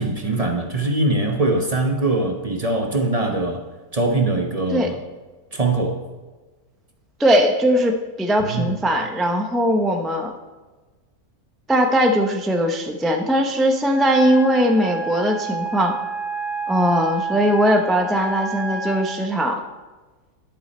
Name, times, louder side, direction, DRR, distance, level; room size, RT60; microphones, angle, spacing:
voice 1, 0.0-3.6 3.9-5.0 5.5-6.0 8.4-8.8, right 2 dB, 35° right, 3 dB, 0.7 m, -22 dB
voice 2, 7.2-10.3 11.7-16.0 16.7-19.6, equal, ahead, 3 dB, 0.3 m, -19 dB
Wind instrument woodwind instrument, 13.9-19.3, right 3 dB, 40° left, 1.1 m, -29 dB
11.5 x 7.0 x 4.2 m, 1.3 s
omnidirectional pair, 1.6 m